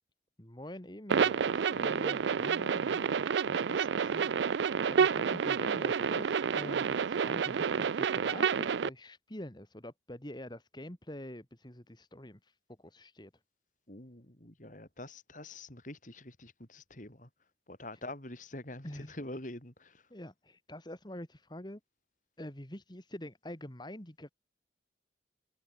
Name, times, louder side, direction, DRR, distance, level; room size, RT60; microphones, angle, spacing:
voice 1, 0.4-2.2 4.1-4.3 4.8-13.3 18.8-19.1 20.1-21.8 22.4-24.3, left 1 dB, 25° left, 2.4 m, -45 dB
sound 1, 1.1-8.9, right 6 dB, 85° right, 0.4 m, -29 dB
voice 2, 1.7-3.2 3.5-4.1 13.9-17.3 17.7-20.1, left 1 dB, 45° left, 4.2 m, -46 dB
head